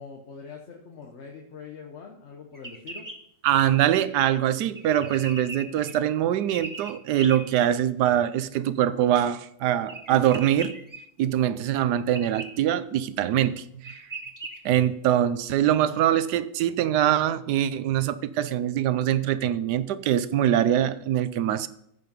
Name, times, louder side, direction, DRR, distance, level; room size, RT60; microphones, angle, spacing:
voice 1, 0.0-3.1, left 5 dB, 45° left, 1 dB, 1.2 m, -43 dB
sound 1, 2.5-3.2 4.8-5.9 6.5-7.4 9.9-11.0 12.1-12.5 13.5-13.6 13.8-14.6, right 2 dB, 15° right, 1.0 m, -38 dB
voice 2, 3.4-10.7 11.2-14.0 14.6-21.7, right 11 dB, 75° right, 14 dB, 1.2 m, -23 dB
15.0 x 5.7 x 5.3 m, 0.75 s
omnidirectional pair, 1.9 m